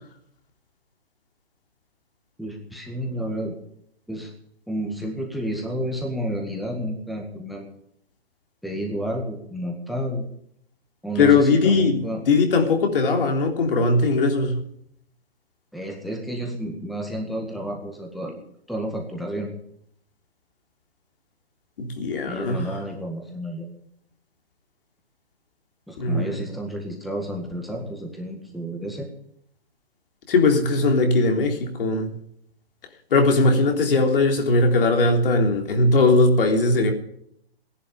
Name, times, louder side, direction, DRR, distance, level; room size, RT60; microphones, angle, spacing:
voice 1, 2.4-3.5 4.1-4.3 4.7-7.7 8.6-10.3 11.0-12.2 15.7-18.3 18.7-19.5 22.3-23.7 25.9-29.1, equal, ahead, 1.8 m, -31 dB
voice 2, 11.2-14.6 21.8-22.7 26.0-26.4 30.3-32.1 33.1-36.9, left 3 dB, 60° left, 3.5 m, -19 dB
16.5 x 11.0 x 6.9 m
hypercardioid pair, 145°, 32 cm